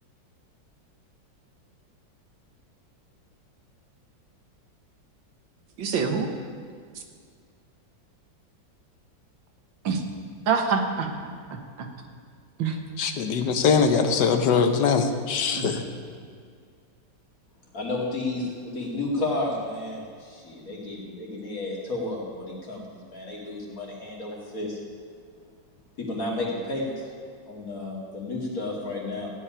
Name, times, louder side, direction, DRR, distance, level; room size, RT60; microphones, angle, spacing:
voice 1, 5.8-6.3 9.8-10.0 10.5-11.1 11.5-11.9 12.6-12.8 15.5-15.7, right 5 dB, 80° right, 4 dB, 1.9 m, -26 dB
voice 2, 13.0-15.8, left 5 dB, 70° left, 7 dB, 1.6 m, -22 dB
voice 3, 17.7-24.8 26.0-26.9 27.5-29.3, left 2 dB, 45° left, -3 dB, 3.0 m, -32 dB
16.0 x 5.5 x 9.9 m, 2.1 s
omnidirectional pair, 2.0 m